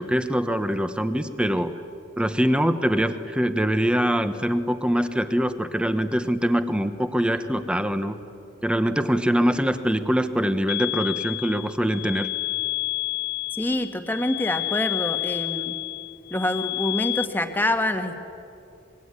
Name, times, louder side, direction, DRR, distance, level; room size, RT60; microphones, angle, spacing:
voice 1, 0.0-1.7 2.2-8.2 8.6-12.3, equal, 5° right, 10 dB, 1.1 m, -23 dB
sound 1, 10.7-17.3, left 23 dB, 50° left, 0.5 m, -30 dB
voice 2, 13.6-15.8 16.3-18.2, left 1 dB, 10° left, 7 dB, 1.6 m, -26 dB
25.0 x 22.5 x 9.7 m, 2.6 s
head